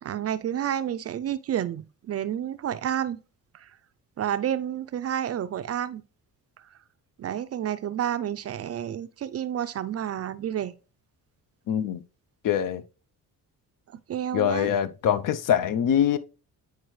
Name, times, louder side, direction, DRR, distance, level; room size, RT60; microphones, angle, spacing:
voice 1, 0.0-3.2 3.5-3.7 4.2-6.0 7.2-10.7 13.9-14.7, right 10 dB, 40° right, 0.4 m, -30 dB
voice 2, 11.7-12.0 12.4-12.8 14.3-16.2, left 9 dB, 60° left, 0.6 m, -24 dB
9.4 x 4.5 x 3.1 m
cardioid pair, 95°, 37 cm